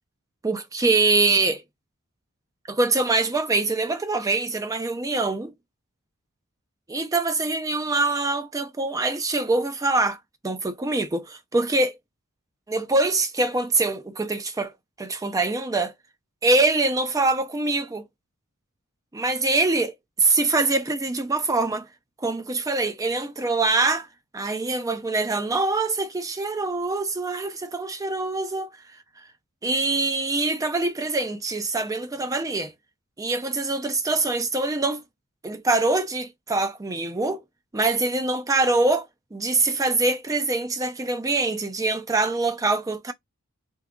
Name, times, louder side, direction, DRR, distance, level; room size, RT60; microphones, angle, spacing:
voice 1, 0.4-1.6 2.7-5.5 6.9-10.2 10.4-12.0 12.7-14.7 15.0-15.9 16.4-18.0 19.1-21.9 22.2-24.1 24.3-28.7 29.6-32.7 33.2-35.0 35.4-37.4 37.7-43.1, right 3 dB, 15° right, 0.4 m, -24 dB
2.7 x 2.3 x 3.6 m
head